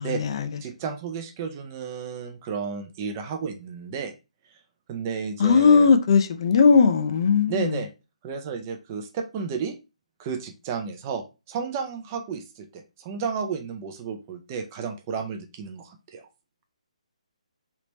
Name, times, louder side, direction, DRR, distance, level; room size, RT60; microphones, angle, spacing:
voice 1, 0.0-0.5 5.4-7.8, left 5 dB, 40° left, 0.4 m, -18 dB
voice 2, 0.6-4.1 4.9-5.9 7.5-7.9 8.2-9.7 10.2-16.2, right 6 dB, 25° right, 0.4 m, -32 dB
3.3 x 2.9 x 3.0 m
hypercardioid pair, 160°, 4 cm